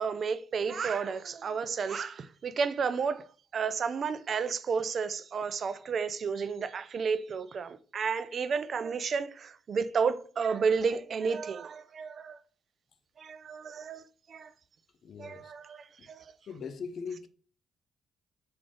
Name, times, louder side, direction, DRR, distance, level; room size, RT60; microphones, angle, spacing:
voice 1, 0.0-3.3 3.5-12.4 13.2-14.0 14.3-14.5 15.2-16.2, right 5 dB, 50° right, 0.3 m, -32 dB
voice 2, 15.0-15.5 16.0-16.1 16.5-17.3, left 5 dB, 60° left, 0.4 m, -40 dB
3.3 x 2.4 x 3.8 m
cardioid pair, 90°, 0 cm